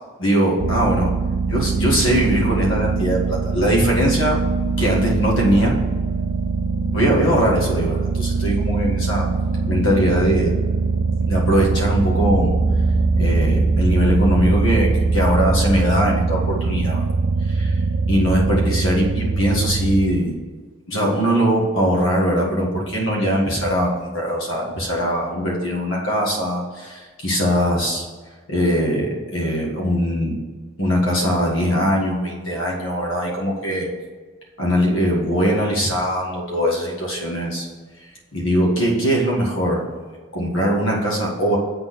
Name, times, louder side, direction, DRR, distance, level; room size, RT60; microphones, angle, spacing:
voice 1, 0.2-1.1 1.5-4.4 4.8-5.8 6.9-9.3 9.7-10.6 11.3-12.6 13.2-17.1 17.5-17.8 18.1-20.4 20.9-28.0 28.5-30.3 30.8-33.9 34.6-37.7 38.3-39.8 40.3-41.6, equal, 80° left, -2 dB, 1.8 m, -21 dB
sound 1, 0.6-20.2, right 4 dB, 60° right, 0.5 m, -21 dB
7.7 x 4.1 x 6.4 m, 1.4 s
head